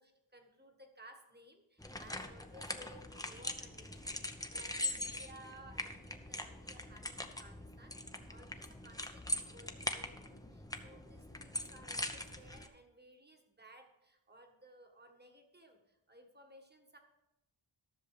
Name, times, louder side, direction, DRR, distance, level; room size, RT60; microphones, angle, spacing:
voice 1, 0.0-17.0, right 1 dB, 20° right, 4 dB, 1.6 m, -59 dB
sound 1, 1.8-12.7, left 1 dB, 5° left, 0.8 m, -42 dB
13.5 x 6.7 x 5.0 m, 0.92 s
wide cardioid pair, 85°, 50 cm